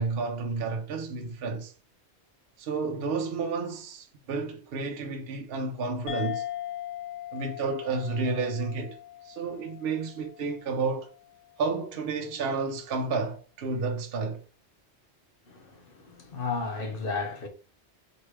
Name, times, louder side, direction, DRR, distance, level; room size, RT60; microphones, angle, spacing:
voice 1, 0.0-1.7 2.6-6.4 7.3-9.0 9.2-11.1 11.6-14.4, right 4 dB, 65° right, 0.8 m, -31 dB
sound 1, 6.1-11.0, left 12 dB, 85° left, 0.9 m, -39 dB
voice 2, 15.5-17.5, left 4 dB, 55° left, 1.1 m, -33 dB
4.2 x 3.3 x 3.2 m
omnidirectional pair, 1.1 m